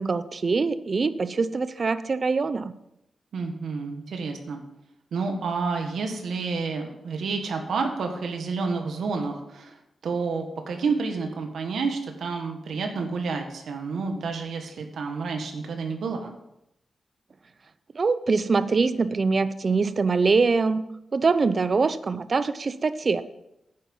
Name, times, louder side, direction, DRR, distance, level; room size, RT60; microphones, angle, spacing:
voice 1, 0.0-2.7 17.9-20.9 21.1-23.2, right 4 dB, 40° right, 14 dB, 0.6 m, -23 dB
voice 2, 3.3-4.6 5.1-9.8 10.0-16.3, right 4 dB, 90° right, 4 dB, 1.6 m, -29 dB
10.0 x 8.5 x 5.5 m, 0.84 s
wide cardioid pair, 135°, 0 cm